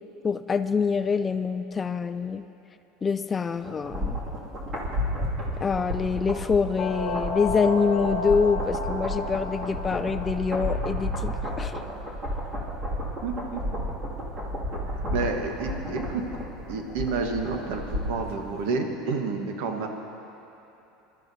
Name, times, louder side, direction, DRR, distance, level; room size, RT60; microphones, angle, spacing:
voice 1, 0.2-2.4 3.0-4.2 5.6-11.8, left 5 dB, 20° left, 11 dB, 0.3 m, -26 dB
sound 1, 3.6-18.3 18.6-18.7, equal, 30° right, 2.3 m, -32 dB
sound 2, 6.8-11.2, left 2 dB, 40° left, 1.9 m, -33 dB
voice 2, 13.2-13.6 14.9-16.2 16.7-19.9, right 4 dB, 75° right, 3 dB, 1.3 m, -30 dB
21.5 x 12.5 x 2.8 m, 3.0 s
supercardioid pair, 140°, 0 cm